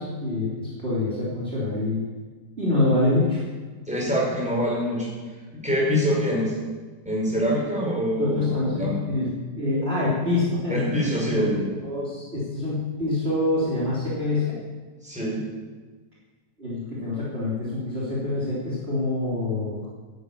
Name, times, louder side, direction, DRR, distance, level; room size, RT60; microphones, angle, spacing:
voice 1, 0.0-2.0 2.6-3.4 8.2-9.3 9.6-10.9 11.3-11.5 11.8-14.6 16.6-19.9, left 2 dB, 35° right, -8 dB, 3.5 m, -26 dB
voice 2, 3.9-5.4 5.6-6.5 7.1-9.0 10.7-11.6 15.0-15.4, equal, 5° right, -4 dB, 5.1 m, -25 dB
12.5 x 9.7 x 8.7 m, 1.4 s
omnidirectional pair, 1.9 m